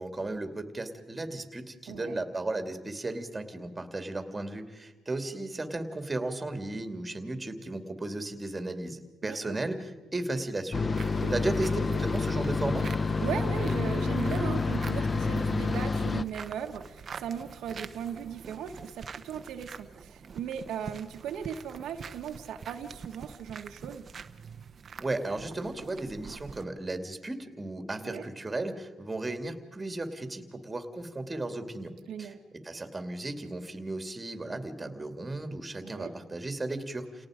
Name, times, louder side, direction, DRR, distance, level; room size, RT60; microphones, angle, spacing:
voice 1, 0.0-10.9 11.3-12.9 25.0-31.9 32.2-37.3, right 2 dB, 20° right, 7 dB, 2.6 m, -35 dB
voice 2, 1.9-2.2 9.2-9.6 11.2-11.3 13.2-24.0 28.0-28.2 32.1-32.4 35.8-36.1, right 8 dB, 80° right, 4 dB, 1.4 m, -38 dB
sound 1, 10.7-16.2, left 4 dB, 30° left, 0.8 m, -28 dB
sound 2, 10.9-26.6, right 6 dB, 45° right, 1.0 m, -46 dB
29.5 x 18.5 x 5.1 m, 1.2 s
cardioid pair, 90°, 0 cm